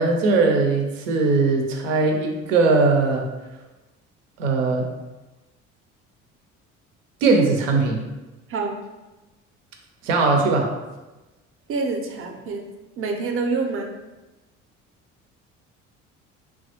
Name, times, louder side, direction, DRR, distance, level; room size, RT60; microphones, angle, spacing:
voice 1, 0.0-3.2 4.4-4.9 7.2-8.0 10.0-10.7, right 3 dB, 80° right, 2 dB, 0.6 m, -19 dB
voice 2, 11.7-12.7 13.0-13.9, right 4 dB, 35° right, 2 dB, 0.6 m, -26 dB
3.2 x 2.2 x 2.9 m, 1.1 s
hypercardioid pair, 55°, 37 cm